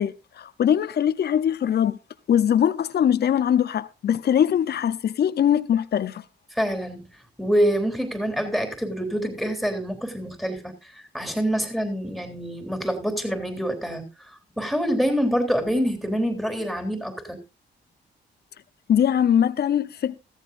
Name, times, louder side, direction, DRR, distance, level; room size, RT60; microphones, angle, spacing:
voice 1, 0.0-2.0 2.3-6.2 18.9-20.2, left 9 dB, 60° left, 0.8 m, -22 dB
voice 2, 6.5-7.1 7.4-14.3 14.6-17.4, equal, ahead, 3.5 m, -26 dB
15.0 x 14.0 x 2.6 m
cardioid pair, 65°, 19 cm